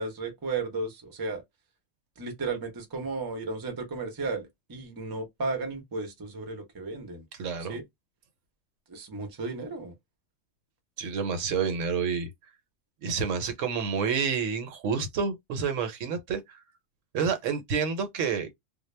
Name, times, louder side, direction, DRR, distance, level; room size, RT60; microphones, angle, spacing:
voice 1, 0.0-1.4 2.2-7.2 7.7-7.8 8.9-9.9, right 3 dB, 25° right, 0.5 m, -34 dB
voice 2, 7.4-7.8 11.0-12.3 13.0-16.6 17.1-18.5, right 6 dB, 75° right, 1.0 m, -29 dB
2.2 x 2.0 x 3.1 m
omnidirectional pair, 1.3 m